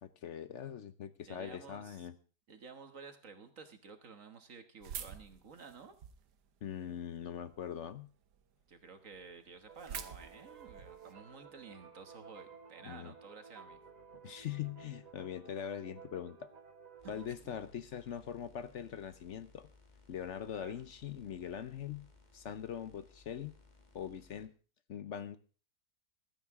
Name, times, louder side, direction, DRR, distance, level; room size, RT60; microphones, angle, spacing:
voice 1, 0.0-2.1 6.6-8.1 12.8-13.1 14.2-16.5 17.1-19.7 20.1-22.1 22.3-23.5 23.9-24.5 24.9-25.4, left 9 dB, 55° left, 13 dB, 0.9 m, -42 dB
voice 2, 1.3-2.1 2.5-5.9 8.7-13.8 17.0-17.1 17.4-17.5 20.5-20.8, right 5 dB, 55° right, 8 dB, 1.6 m, -53 dB
sound 1, 4.8-6.3 6.9-7.6 8.0-8.1 8.3-8.4 8.8-8.9 9.1-11.1, right 8 dB, 85° right, 1.6 m, -46 dB
sound 2, 9.7-17.3, right 5 dB, 30° right, 0.9 m, -55 dB
sound 3, 17.0-24.5, left 3 dB, 30° left, 1.7 m, -63 dB
15.5 x 13.0 x 3.6 m, 0.38 s
omnidirectional pair, 1.7 m